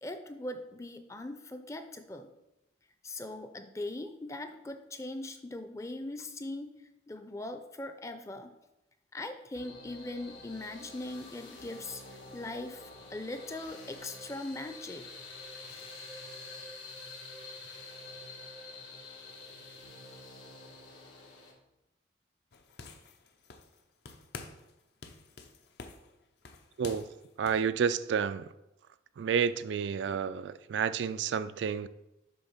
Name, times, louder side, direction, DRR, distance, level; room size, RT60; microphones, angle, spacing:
voice 1, 0.0-2.3 3.0-6.7 7.1-8.5 9.1-15.0 20.1-20.2, left 2 dB, 15° left, 0.5 m, -40 dB
sound 1, 9.5-21.5, left 3 dB, 85° left, 1.9 m, -48 dB
sound 2, 22.5-23.8 24.1-24.7 25.0-27.7, left 4 dB, 65° left, 0.7 m, -48 dB
voice 2, 27.4-28.5 29.2-31.9, right 7 dB, 80° right, 0.3 m, -30 dB
7.7 x 3.5 x 5.7 m
head